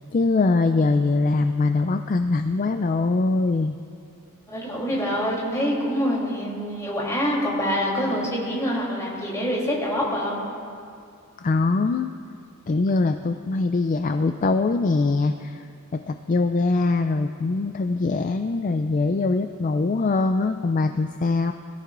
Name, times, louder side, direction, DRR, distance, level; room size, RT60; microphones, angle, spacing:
voice 1, 0.1-3.8 11.4-12.1 12.7-15.6 15.9-21.5, left 3 dB, 35° left, 7 dB, 0.4 m, -22 dB
voice 2, 4.5-10.4, equal, 15° left, -5 dB, 3.3 m, -25 dB
22.0 x 14.0 x 2.6 m, 2.4 s
head